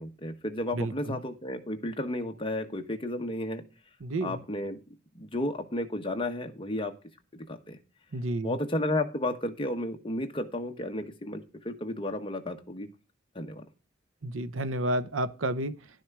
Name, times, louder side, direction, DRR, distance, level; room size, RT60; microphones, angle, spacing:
voice 1, 0.0-3.6 4.2-4.8 5.1-6.9 7.3-7.8 8.4-12.9 13.3-13.6, left 1 dB, 25° left, 1.3 m, -33 dB
voice 2, 0.7-1.2 4.0-4.4 8.1-8.6 14.2-15.7, right 1 dB, 80° right, 0.9 m, -31 dB
11.5 x 6.3 x 4.8 m
head